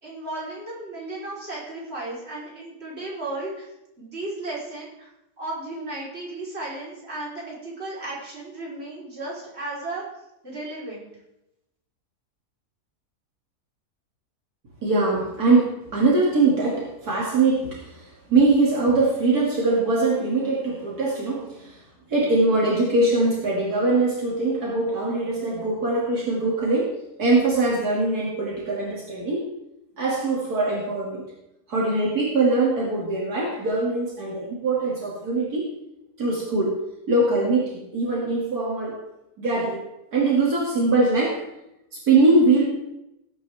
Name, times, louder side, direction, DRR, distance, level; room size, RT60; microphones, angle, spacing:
voice 1, 0.0-3.7 4.0-5.1 5.4-10.0 10.4-11.1, right 2 dB, 40° right, -5 dB, 4.3 m, -34 dB
voice 2, 14.8-21.8 22.1-29.5 30.0-31.2 31.7-35.7 36.2-36.8 37.1-39.0 39.4-39.8 40.1-41.4 42.1-42.7, right 3 dB, 75° right, -4 dB, 2.9 m, -22 dB
19.0 x 9.0 x 3.5 m, 0.86 s
omnidirectional pair, 1.7 m